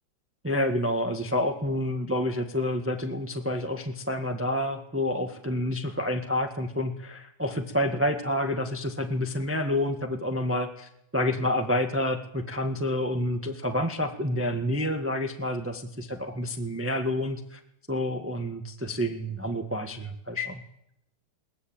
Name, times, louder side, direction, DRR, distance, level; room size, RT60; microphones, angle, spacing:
voice 1, 0.4-17.6 17.9-20.6, left 1 dB, 5° right, 5 dB, 1.5 m, -28 dB
21.5 x 20.0 x 8.9 m, 0.81 s
omnidirectional pair, 2.2 m